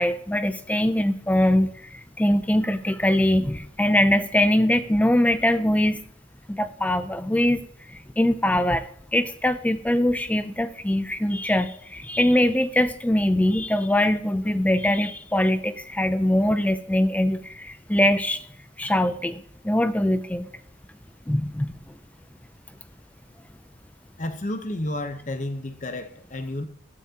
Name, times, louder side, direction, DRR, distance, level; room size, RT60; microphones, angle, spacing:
voice 1, 0.0-6.0 6.5-7.6 7.9-18.4 18.8-20.5 21.3-22.0, left 1 dB, 10° left, 11 dB, 0.4 m, -22 dB
voice 2, 24.2-26.7, left 1 dB, 40° left, 8 dB, 0.9 m, -31 dB
14.5 x 9.4 x 2.9 m, 0.64 s
head